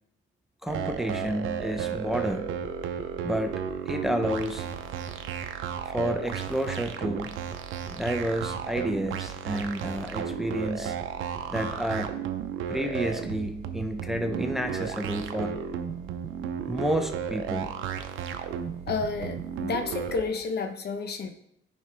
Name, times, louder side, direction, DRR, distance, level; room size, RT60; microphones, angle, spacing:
voice 1, 0.6-2.5 3.2-3.5 3.9-4.7 5.8-7.4 7.9-11.0 11.5-12.2 12.7-15.6 16.7-17.7, equal, ahead, 6 dB, 0.7 m, -30 dB
sound 1, 0.7-20.2, right 8 dB, 85° right, 0.7 m, -34 dB
voice 2, 18.9-21.3, left 4 dB, 55° left, 7 dB, 0.9 m, -30 dB
9.1 x 5.3 x 3.4 m, 0.72 s
cardioid pair, 90°, 20 cm